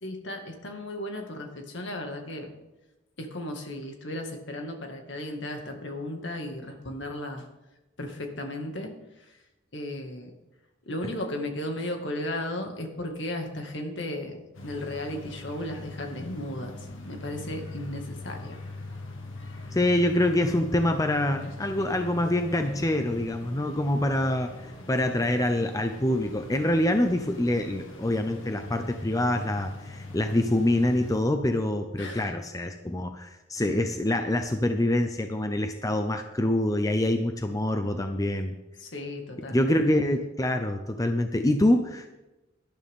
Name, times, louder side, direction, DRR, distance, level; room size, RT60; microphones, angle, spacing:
voice 1, 0.0-2.5 3.2-7.4 8.0-8.9 9.7-10.3 10.9-18.6 32.0-32.3 38.8-39.7, left 1 dB, 65° left, 3 dB, 2.1 m, -35 dB
sound 1, 14.5-31.2, left 2 dB, 85° left, 1.8 m, -42 dB
voice 2, 19.7-24.5 24.9-38.6 39.5-42.1, left 1 dB, 15° left, 6 dB, 0.7 m, -25 dB
18.0 x 12.0 x 3.7 m, 1.0 s
head